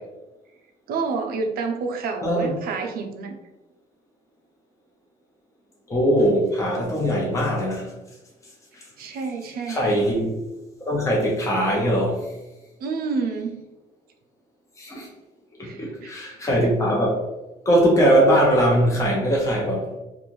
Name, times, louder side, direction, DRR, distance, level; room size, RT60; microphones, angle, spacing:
voice 1, 0.9-3.4 9.0-9.9 12.8-13.6 15.6-16.1, right 4 dB, 65° right, 4 dB, 0.5 m, -29 dB
voice 2, 2.2-2.6 5.9-7.9 8.4-8.9 9.7-10.4 10.8-12.3 14.8-15.1 15.6-17.2 17.6-20.0, equal, 20° left, -3 dB, 0.7 m, -21 dB
2.5 x 2.3 x 3.0 m, 1.0 s
cardioid pair, 110°, 17 cm